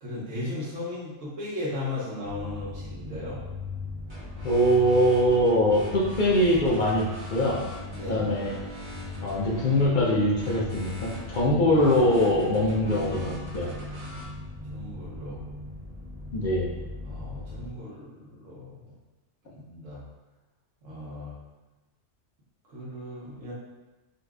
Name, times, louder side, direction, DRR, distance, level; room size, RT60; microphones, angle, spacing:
voice 1, 0.0-3.4 7.9-8.3 14.7-15.4 17.0-18.9 19.4-20.0 20.8-21.4 22.7-23.5, left 2 dB, 70° right, -6 dB, 1.3 m, -36 dB
sound 1, 2.2-17.7, left 3 dB, 45° right, 0.5 m, -39 dB
sound 2, 4.1-14.2, equal, 25° right, 1.1 m, -43 dB
voice 2, 4.4-7.6 8.0-8.5 9.2-13.7 16.3-16.8, equal, 55° left, -4 dB, 0.6 m, -23 dB
4.0 x 2.7 x 2.3 m, 1.1 s
omnidirectional pair, 1.4 m